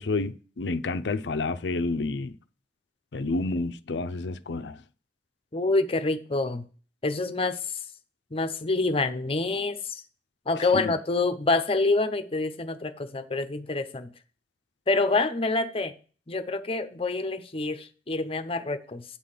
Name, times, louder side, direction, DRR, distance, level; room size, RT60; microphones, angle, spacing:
voice 1, 0.0-2.4 3.1-4.8 10.7-10.9, left 3 dB, 80° left, 0.6 m, -29 dB
voice 2, 5.5-6.7 7.0-7.6 8.3-10.0 10.5-14.1 14.9-15.9 16.3-19.0, left 3 dB, 35° left, 0.8 m, -27 dB
8.8 x 3.9 x 6.6 m
head